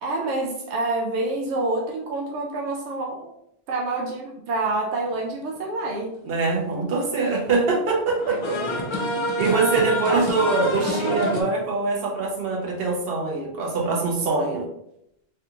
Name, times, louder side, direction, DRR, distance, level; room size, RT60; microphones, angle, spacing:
voice 1, 0.0-3.3 3.7-6.2 8.3-8.4 8.7-8.8 9.7-10.3, right 2 dB, 90° right, -1 dB, 0.8 m, -27 dB
voice 2, 6.2-8.4 9.4-14.6, right 3 dB, 65° right, -1 dB, 1.0 m, -23 dB
sound 1, 6.3-6.4 8.1-11.4, left 1 dB, 50° left, 0.3 m, -26 dB
3.4 x 2.4 x 2.9 m, 0.79 s
omnidirectional pair, 1.1 m